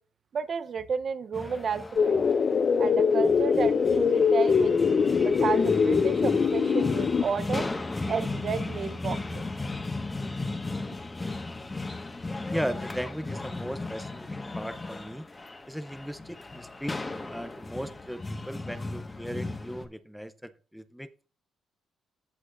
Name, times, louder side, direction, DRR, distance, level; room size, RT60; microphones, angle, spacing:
voice 1, 0.3-2.2 2.8-4.8 5.2-7.7 8.1-9.5, right 6 dB, 50° right, 0.8 m, -32 dB
sound 1, 1.3-19.8, left 2 dB, 20° left, 1.4 m, -36 dB
sound 2, 2.0-7.2, left 6 dB, 45° left, 0.6 m, -23 dB
voice 2, 12.5-15.3 15.7-21.3, equal, ahead, 0.6 m, -37 dB
15.0 x 6.1 x 2.6 m
cardioid pair, 90°, 0 cm